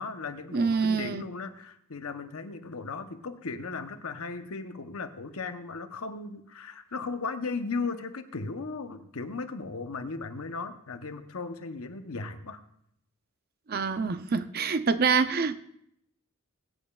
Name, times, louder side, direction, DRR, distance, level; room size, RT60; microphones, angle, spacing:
voice 1, 0.0-12.6, left 4 dB, 75° left, 0.9 m, -36 dB
voice 2, 0.5-1.3 13.7-15.6, right 5 dB, 45° right, 0.5 m, -26 dB
21.5 x 8.8 x 2.4 m
head